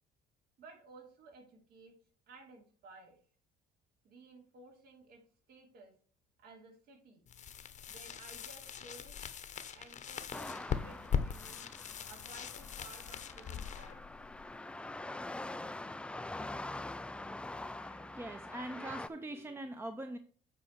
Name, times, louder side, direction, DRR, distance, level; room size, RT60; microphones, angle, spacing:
voice 1, 0.6-1.9 2.3-3.2 4.0-5.2 5.5-5.9 6.4-7.2 7.9-9.3 9.7-11.7 12.1-14.0, right 3 dB, 65° right, 1 dB, 2.8 m, -56 dB
sound 1, 7.3-15.0, left 7 dB, 45° left, 0.9 m, -41 dB
sound 2, 10.3-19.1, left 2 dB, 5° left, 0.3 m, -44 dB
voice 2, 17.7-20.2, right 1 dB, 15° right, 7 dB, 0.7 m, -43 dB
8.3 x 4.9 x 4.6 m, 0.43 s
cardioid pair, 110°, 17 cm